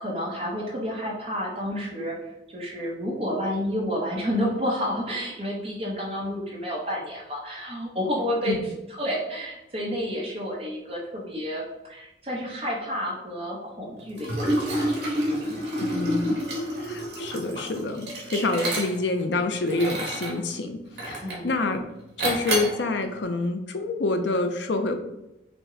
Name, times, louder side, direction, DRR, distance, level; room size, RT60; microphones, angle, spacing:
voice 1, 0.0-8.7 9.0-14.9 15.3-15.6 21.2-21.5, equal, 30° right, -4 dB, 0.9 m, -30 dB
Liquid, 14.2-19.2 19.7-20.4 21.0-21.5 22.2-22.8, right 1 dB, 70° right, 1.6 m, -28 dB
voice 2, 15.8-16.4 16.8-21.8 22.2-25.0, left 2 dB, 70° left, 6 dB, 0.6 m, -27 dB
5.9 x 2.2 x 3.8 m, 0.90 s
head